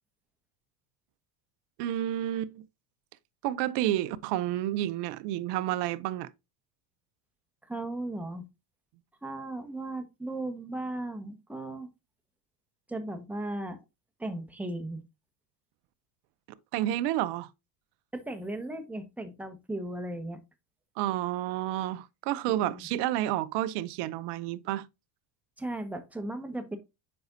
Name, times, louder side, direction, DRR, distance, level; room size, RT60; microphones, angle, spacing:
voice 1, 1.8-2.6 3.4-6.3 16.7-17.5 21.0-24.9, right 13 dB, 55° right, 0.7 m, -30 dB
voice 2, 7.6-8.5 9.2-11.9 12.9-13.8 14.2-15.0 18.1-20.4 22.5-22.9 25.6-26.8, right 1 dB, 5° right, 1.3 m, -36 dB
7.8 x 5.3 x 2.6 m
hypercardioid pair, 90°, 48 cm